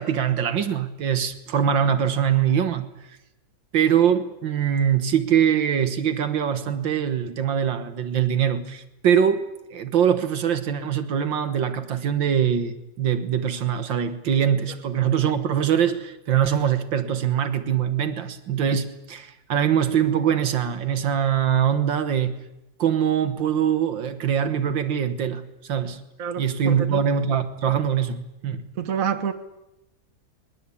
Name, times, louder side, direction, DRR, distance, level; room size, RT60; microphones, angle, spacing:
voice 1, 0.0-2.9 3.7-9.5 9.7-22.4 22.8-26.0 26.4-28.6, right 8 dB, 75° right, 2.0 m, -23 dB
voice 2, 26.2-27.0 28.8-29.3, right 7 dB, 50° right, 1.7 m, -27 dB
21.0 x 20.5 x 8.5 m
omnidirectional pair, 2.0 m